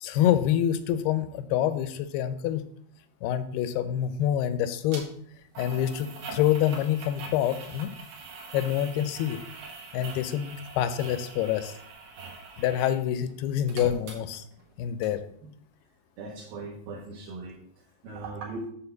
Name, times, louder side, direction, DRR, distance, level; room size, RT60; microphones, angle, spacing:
voice 1, 0.0-2.6 3.2-5.0 5.6-7.9 8.5-9.4 9.9-11.7 12.6-14.4 14.8-15.2, left 11 dB, 80° left, 11 dB, 2.4 m, -26 dB
sound 1, 4.9-5.0 5.6-13.0 13.3-14.7 15.0-15.1, right 4 dB, 85° right, 3.9 m, -43 dB
voice 2, 16.2-17.6 18.0-18.7, right 3 dB, 65° right, -4 dB, 2.7 m, -38 dB
9.0 x 3.7 x 6.9 m, 0.65 s
omnidirectional pair, 4.8 m